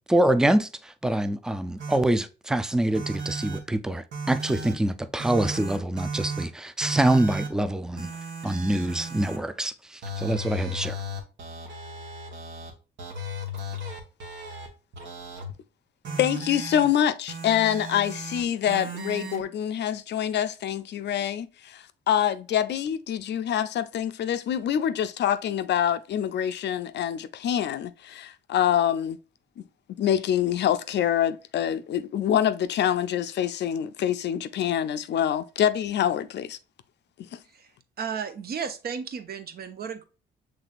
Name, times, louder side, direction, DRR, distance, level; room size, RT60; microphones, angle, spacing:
voice 1, 0.1-8.1 8.4-11.0, right 1 dB, 5° right, 0.4 m, -25 dB
sound 1, 1.8-2.0 2.9-3.6 4.1-4.7 5.2-6.4 6.8-7.5 8.0-9.4 10.0-12.7 13.0-14.7 14.9-15.5 16.0-16.9 17.3-18.4 18.7-19.4, right 1 dB, 70° right, 1.1 m, -35 dB
voice 2, 16.2-29.2 30.0-36.6 37.2-37.4, left 10 dB, 60° left, 0.4 m, -26 dB
voice 3, 38.0-40.0, right 6 dB, 55° right, 0.6 m, -34 dB
5.9 x 3.2 x 2.4 m
cardioid pair, 80°, 20 cm